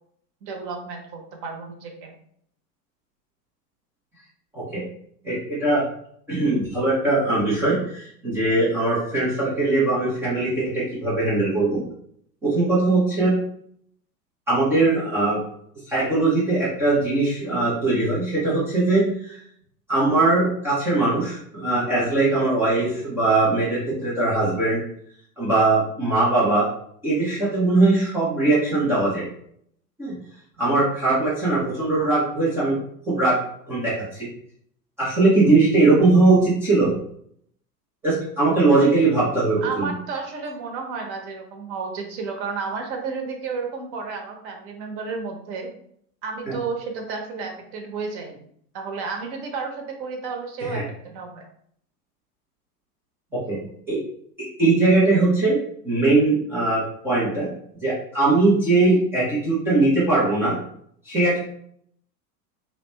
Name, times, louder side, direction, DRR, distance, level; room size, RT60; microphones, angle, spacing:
voice 1, 0.4-2.1 39.6-45.7 46.2-48.5 48.7-51.4, right 4 dB, 40° right, 3 dB, 0.8 m, -32 dB
voice 2, 5.2-5.8 6.3-11.8 12.4-13.3 14.5-15.4 15.9-19.4 19.9-24.8 25.4-26.7 27.0-29.3 30.0-30.1 30.6-32.8 33.1-33.4 33.7-34.3 35.0-36.9 38.0-39.9 50.6-50.8 53.3-53.6 53.9-54.0 54.6-55.6 55.8-57.5 57.8-60.6 61.1-61.4, right 2 dB, 5° right, -10 dB, 0.3 m, -20 dB
2.8 x 2.0 x 3.2 m, 0.67 s
figure-of-eight pair, 90°, 50 cm